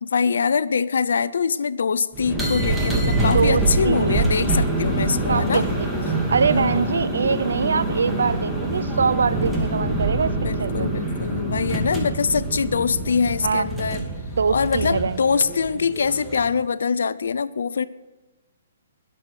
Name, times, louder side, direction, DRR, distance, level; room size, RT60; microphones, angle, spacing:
voice 1, 0.0-5.6 6.5-7.0 10.4-14.1 14.5-17.8, left 5 dB, 75° left, 16 dB, 0.7 m, -23 dB
sound 1, 2.1-16.6, right 2 dB, 5° right, 2.4 m, -25 dB
voice 2, 3.3-4.2 5.3-5.6 6.3-10.3 10.6-10.9 13.4-13.7 14.4-15.2, right 5 dB, 80° right, 16 dB, 0.6 m, -23 dB
21.0 x 7.7 x 5.1 m, 1.1 s
hypercardioid pair, 140°, 0 cm